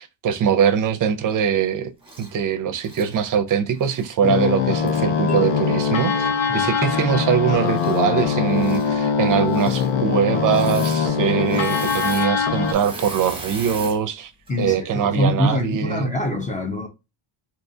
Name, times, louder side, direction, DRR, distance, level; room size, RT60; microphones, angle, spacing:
voice 1, 0.0-1.9 2.2-14.3 14.6-16.1, right 8 dB, 40° right, 0.5 m, -22 dB
Engine / Mechanisms, 2.0-2.3 2.8-4.1 4.9-5.0 7.7-8.2 8.5-8.9 9.4-9.9 10.4-11.0 11.3-14.0 14.5-14.7, right 2 dB, 10° right, 0.9 m, -37 dB
sound 1, 4.2-12.7, left 6 dB, 75° left, 0.9 m, -22 dB
sound 2, 5.3-7.2, right 6 dB, 50° left, 2.0 m, -35 dB
voice 2, 14.5-16.9, left 1 dB, 15° left, 0.5 m, -24 dB
3.6 x 2.8 x 2.7 m
cardioid pair, 150°, 49 cm